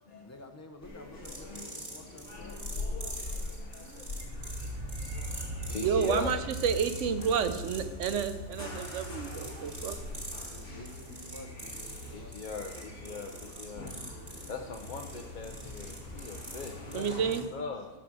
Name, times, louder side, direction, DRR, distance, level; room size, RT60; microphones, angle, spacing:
voice 1, 0.2-3.0 5.6-6.1 10.4-13.5, left 2 dB, 15° left, 5 dB, 0.8 m, -52 dB
sound 1, 0.8-17.4, left 2 dB, 85° left, 2.0 m, -44 dB
sound 2, 1.2-17.5, right 1 dB, 30° right, 1.9 m, -46 dB
voice 2, 3.3-6.4 12.1-13.3 13.6-13.9 14.5-17.9, left 5 dB, 45° left, 2 dB, 0.8 m, -41 dB
sound 3, 4.2-16.0, equal, 55° right, 4.1 m, -43 dB
voice 3, 5.8-10.0 16.9-17.5, right 7 dB, 85° right, 11 dB, 1.0 m, -30 dB
13.0 x 5.0 x 6.1 m, 1.1 s
omnidirectional pair, 1.2 m